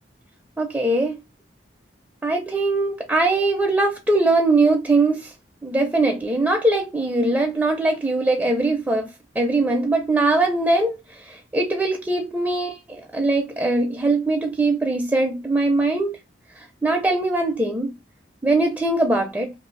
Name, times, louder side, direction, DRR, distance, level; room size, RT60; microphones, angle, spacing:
voice 1, 0.6-1.2 2.2-5.3 5.6-9.1 9.3-16.2 16.5-17.9 18.4-19.5, right 2 dB, 10° right, 0.4 m, -21 dB
2.6 x 2.6 x 3.1 m
head